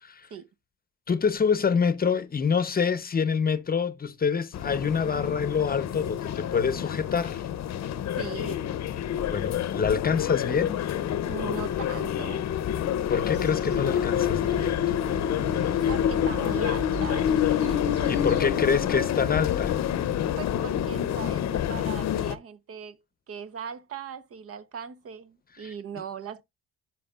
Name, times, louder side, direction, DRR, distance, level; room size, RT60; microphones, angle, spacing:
voice 1, 1.1-7.4 9.3-10.9 13.1-14.8 18.1-19.8 25.6-25.7, left 6 dB, 30° left, 0.7 m, -26 dB
sound 1, 4.5-22.4, left 10 dB, 60° left, 0.7 m, -27 dB
voice 2, 8.1-8.6 11.2-12.5 15.9-18.1 20.4-23.0 23.3-26.4, right 7 dB, 50° right, 0.8 m, -39 dB
sound 2, 13.3-18.6, right 4 dB, 80° right, 2.7 m, -40 dB
11.0 x 4.8 x 2.4 m
cardioid pair, 90°, 30 cm